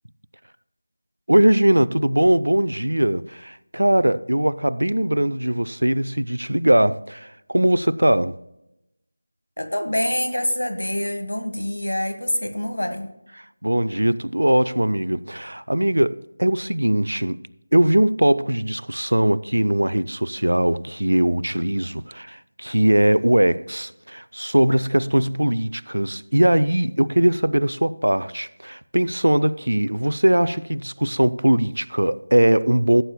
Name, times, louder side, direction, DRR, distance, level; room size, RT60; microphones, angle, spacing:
voice 1, 1.3-8.4 13.4-17.4 17.7-33.0, right 1 dB, 85° right, 0.4 m, -20 dB
voice 2, 9.6-13.1, left 1 dB, 90° left, 1.5 m, -25 dB
16.5 x 8.9 x 2.2 m
figure-of-eight pair, 170°, 0 cm